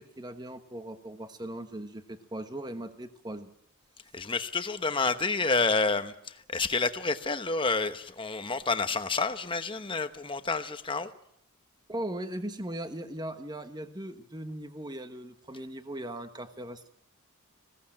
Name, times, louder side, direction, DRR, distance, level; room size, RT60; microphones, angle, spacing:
voice 1, 0.0-3.5 11.9-16.9, right 1 dB, 20° right, 9 dB, 1.1 m, -39 dB
voice 2, 4.1-6.1 6.5-11.1, left 4 dB, 20° left, 10 dB, 1.0 m, -29 dB
21.0 x 17.0 x 8.8 m, 0.76 s
head